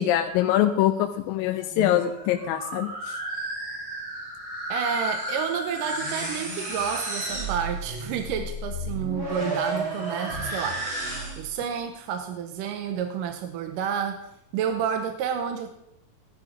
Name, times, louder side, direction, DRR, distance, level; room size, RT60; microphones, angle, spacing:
voice 1, 0.0-3.2, left 11 dB, 85° left, 6 dB, 2.4 m, -24 dB
sound 1, 1.6-11.6, right 1 dB, 35° right, 3.2 m, -32 dB
voice 2, 4.7-10.9 11.4-14.3 14.5-15.7, right 7 dB, 75° right, 6 dB, 2.3 m, -30 dB
16.0 x 11.5 x 3.6 m, 0.78 s
omnidirectional pair, 4.1 m